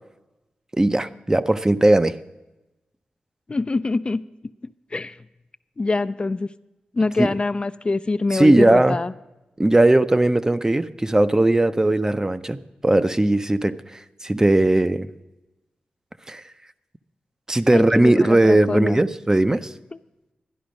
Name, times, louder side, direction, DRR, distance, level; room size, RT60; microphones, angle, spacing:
voice 1, 0.7-2.2 7.2-7.3 8.3-9.0 9.6-12.6 12.8-13.8 14.2-15.1 16.3-16.4 17.5-19.7, right 1 dB, 20° right, 12 dB, 0.5 m, -18 dB
voice 2, 3.5-4.2 4.9-5.2 5.8-6.5 6.9-9.1 17.7-19.0, left 3 dB, 35° left, 12 dB, 0.3 m, -24 dB
12.0 x 10.5 x 5.1 m, 1.0 s
cardioid pair, 55°, 3 cm